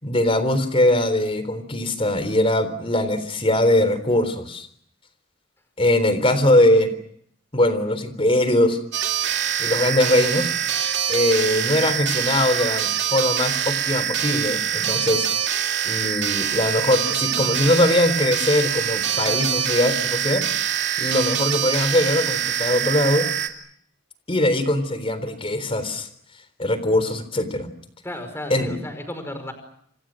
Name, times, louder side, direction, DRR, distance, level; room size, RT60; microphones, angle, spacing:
voice 1, 0.0-4.7 5.8-6.9 7.5-8.8 9.6-10.5 11.1-15.3 15.8-20.4 21.0-23.3 24.3-26.1 26.6-27.7 28.5-28.8, left 1 dB, 30° left, 13 dB, 3.8 m, -21 dB
sound 1, 8.9-23.5, right 9 dB, 60° right, 2.6 m, -24 dB
voice 2, 28.0-29.5, left 1 dB, 10° left, 7 dB, 5.4 m, -33 dB
28.5 x 28.0 x 6.4 m, 0.68 s
head